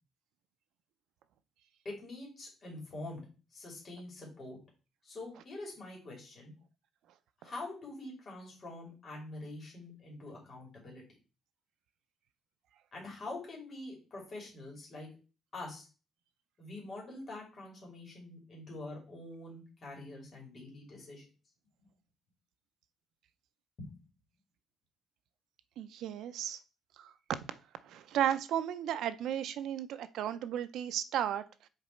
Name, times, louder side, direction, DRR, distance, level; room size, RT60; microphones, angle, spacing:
voice 1, 1.8-4.6 5.0-6.5 7.4-11.0 12.9-15.1 15.5-15.9 16.6-21.2 23.8-23.9, left 2 dB, 30° left, -2 dB, 2.9 m, -45 dB
voice 2, 25.8-26.6 27.0-27.4 27.8-31.4, right 10 dB, 70° right, 12 dB, 0.5 m, -34 dB
6.6 x 4.1 x 4.4 m, 0.33 s
cardioid pair, 175°, 0 cm